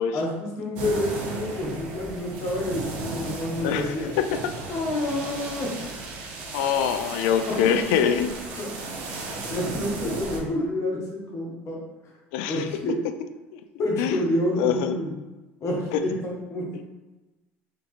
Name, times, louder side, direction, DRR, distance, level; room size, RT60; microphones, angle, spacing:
voice 1, 0.1-4.1 4.7-5.7 7.6-8.1 8.6-8.7 9.5-11.8 12.5-13.0 13.8-15.1 15.6-16.6, left 1 dB, 50° left, -3 dB, 1.4 m, -28 dB
sound 1, 0.8-10.4, right 3 dB, 75° right, 0.8 m, -35 dB
voice 2, 3.6-4.6 6.5-8.3 12.3-12.6 13.5-13.6 14.0-14.2 14.6-15.0 15.9-16.0, left 8 dB, 75° left, 9 dB, 0.3 m, -24 dB
3.5 x 3.5 x 3.2 m, 1.1 s
hypercardioid pair, 80°, 7 cm